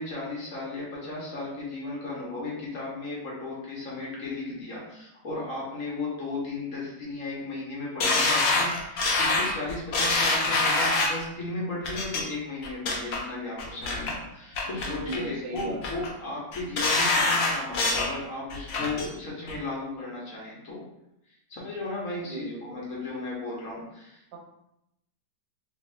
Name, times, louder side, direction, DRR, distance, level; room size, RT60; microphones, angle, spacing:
voice 1, 0.0-20.8 21.5-24.4, left 2 dB, 55° left, -5 dB, 1.3 m, -35 dB
sound 1, 8.0-11.2 11.8-12.2 12.6-13.2 13.6-14.1 14.5-15.2 15.6-16.1 16.5-18.1 18.5-19.1 19.5-19.6, left 3 dB, 75° left, 0.6 m, -25 dB
voice 2, 14.9-15.8 22.2-22.8 24.3-24.4, right 2 dB, 90° right, 1 dB, 1.4 m, -37 dB
3.5 x 2.7 x 3.3 m, 0.84 s
omnidirectional pair, 1.8 m